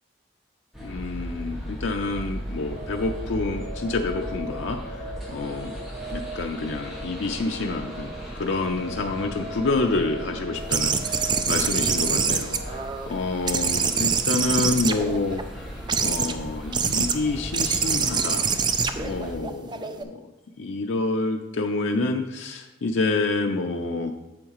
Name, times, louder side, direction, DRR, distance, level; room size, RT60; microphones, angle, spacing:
sound 1, 0.7-19.3, equal, ahead, 1.8 m, -37 dB
voice 1, 0.8-5.7 6.1-15.4 16.0-18.5 19.0-20.2 20.6-24.1, left 3 dB, 85° left, 3 dB, 0.5 m, -28 dB
sound 2, 2.7-12.8, right 1 dB, 55° right, 0.7 m, -40 dB
sound 3, 10.7-13.1 13.5-15.4 15.9-16.3 16.7-17.2 17.5-20.0, right 6 dB, 25° right, 0.4 m, -25 dB
8.5 x 7.1 x 3.1 m, 1.0 s
head